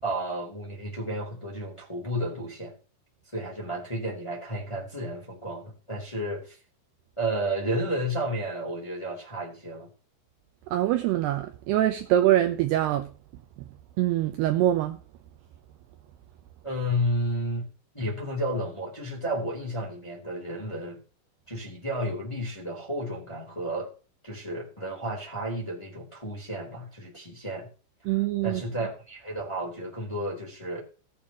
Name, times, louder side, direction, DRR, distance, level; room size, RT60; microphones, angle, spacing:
voice 1, 0.0-2.7 3.3-6.6 7.2-9.9 16.6-21.0 21.5-23.9 24.2-27.7 28.4-30.8, equal, 10° left, 2.6 m, -32 dB
voice 2, 10.7-13.1 14.0-15.0 28.1-28.6, right 13 dB, 80° right, 2.4 m, -24 dB
18.5 x 8.6 x 3.0 m
omnidirectional pair, 5.6 m